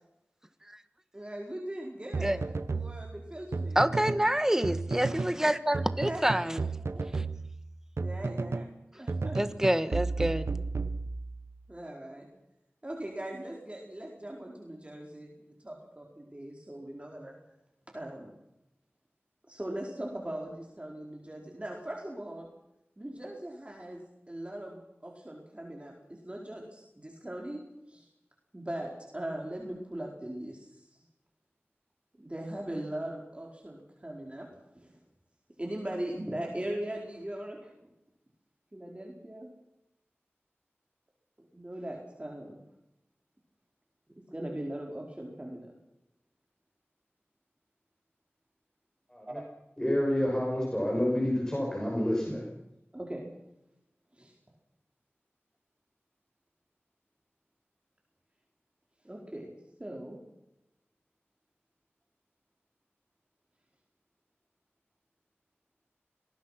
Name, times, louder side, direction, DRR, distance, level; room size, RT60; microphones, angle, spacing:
voice 1, 1.1-3.8 6.0-6.4 6.8-7.1 8.0-8.7 9.0-9.5 11.7-12.3 12.8-17.4 17.9-18.3 19.4-22.5 23.0-27.6 27.9-28.1 28.5-31.0 32.2-34.5 34.7-35.0 35.6-37.7 38.7-39.5 41.5-42.6 44.3-45.8 49.3-49.4 52.9-53.3 54.1-54.3 59.0-59.5 59.8-60.2, right 1 dB, 25° right, 4.6 m, -40 dB
sound 1, 2.1-4.3 4.6-5.4 5.7-8.7 9.1-11.5, right 3 dB, 80° right, 1.0 m, -33 dB
voice 2, 3.7-6.6 7.1-7.2 9.3-10.5, right 1 dB, 10° right, 1.4 m, -27 dB
voice 3, 49.8-52.5, left 1 dB, 15° left, 6.3 m, -28 dB
26.5 x 20.5 x 5.9 m
wide cardioid pair, 60°, 4 cm